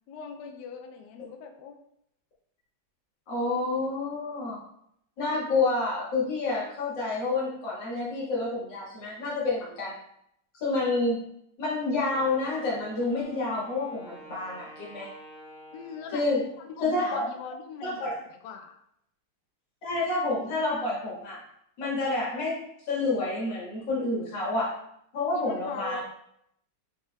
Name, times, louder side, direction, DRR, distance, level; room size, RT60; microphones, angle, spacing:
voice 1, 0.1-1.8 15.7-16.3 16.6-18.1 18.4-18.8 25.3-26.0, left 6 dB, 85° left, 4 dB, 0.9 m, -41 dB
voice 2, 3.3-4.6 5.2-9.9 10.6-11.2 11.6-15.1 16.1-16.4 16.8-17.2 17.8-18.1 19.8-21.4 21.8-22.6 22.9-24.7 25.1-26.0, left 3 dB, 60° left, -5 dB, 2.0 m, -28 dB
Wind instrument woodwind instrument, 12.0-16.9, equal, ahead, 1.2 m, -49 dB
4.7 x 4.2 x 2.2 m, 0.74 s
omnidirectional pair, 2.4 m